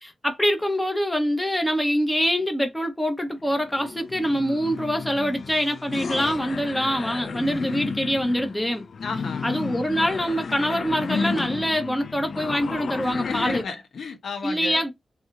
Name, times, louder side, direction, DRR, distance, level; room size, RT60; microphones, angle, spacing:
voice 1, 0.0-8.9 9.4-13.6 14.4-14.9, equal, 10° left, 0.9 m, -25 dB
sound 1, 3.4-13.6, left 5 dB, 60° left, 0.4 m, -32 dB
voice 2, 9.0-9.5 13.2-14.8, left 4 dB, 80° left, 1.0 m, -33 dB
3.4 x 2.7 x 4.1 m
wide cardioid pair, 135°, 0 cm